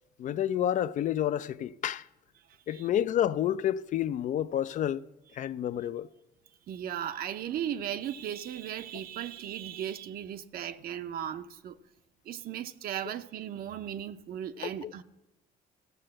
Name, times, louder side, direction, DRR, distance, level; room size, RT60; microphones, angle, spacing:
voice 1, 0.2-2.1 2.7-5.1 5.3-6.1 14.6-14.9, left 11 dB, 50° left, 0.4 m, -29 dB
voice 2, 6.7-11.8 12.3-15.0, right 10 dB, 60° right, 0.7 m, -36 dB
15.0 x 6.6 x 7.6 m
cardioid pair, 110°, 17 cm